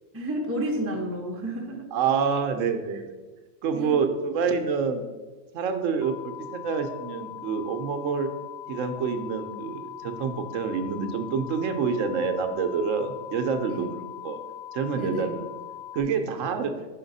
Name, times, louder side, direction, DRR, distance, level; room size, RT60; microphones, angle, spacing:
voice 1, 0.1-1.9 2.9-3.0 3.7-4.0 13.7-13.9 14.9-15.4, right 1 dB, 15° right, 1 dB, 0.5 m, -31 dB
voice 2, 1.9-3.0 3.6-5.0 5.5-8.3 8.7-13.9 14.2-14.4 14.7-15.4 15.9-16.9, right 5 dB, 80° right, 7 dB, 1.0 m, -27 dB
sound 1, 6.0-16.0, left 12 dB, 75° left, 0.9 m, -41 dB
5.8 x 4.2 x 4.0 m, 1.3 s
omnidirectional pair, 1.3 m